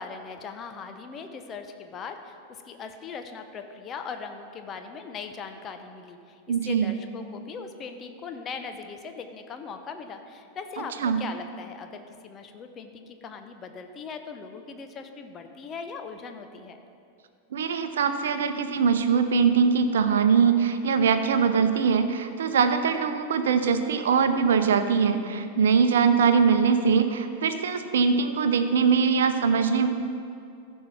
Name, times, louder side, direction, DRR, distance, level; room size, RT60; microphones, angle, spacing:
voice 1, 0.0-16.8, left 5 dB, 25° left, 6 dB, 0.9 m, -40 dB
voice 2, 6.5-6.9 11.0-11.2 17.5-29.9, right 6 dB, 65° right, 9 dB, 0.7 m, -22 dB
15.0 x 5.6 x 5.8 m, 2.5 s
figure-of-eight pair, 90°, 0 cm